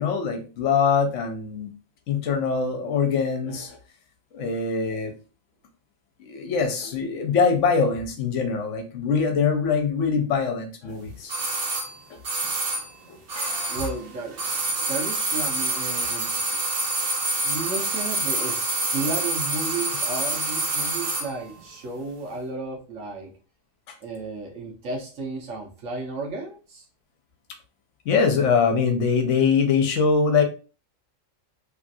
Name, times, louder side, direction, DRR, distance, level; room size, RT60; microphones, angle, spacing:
voice 1, 0.0-1.7 2.1-3.8 4.3-5.1 6.2-11.4 13.1-13.8 28.0-30.4, left 5 dB, 65° left, 5 dB, 1.0 m, -23 dB
sound 1, 11.3-14.1 14.3-21.3 21.6-21.7, right 2 dB, 55° right, 0.8 m, -27 dB
voice 2, 13.7-16.4 17.4-23.3 24.0-26.9, right 3 dB, 70° right, -1 dB, 1.3 m, -33 dB
3.1 x 2.4 x 2.6 m, 0.35 s
omnidirectional pair, 1.4 m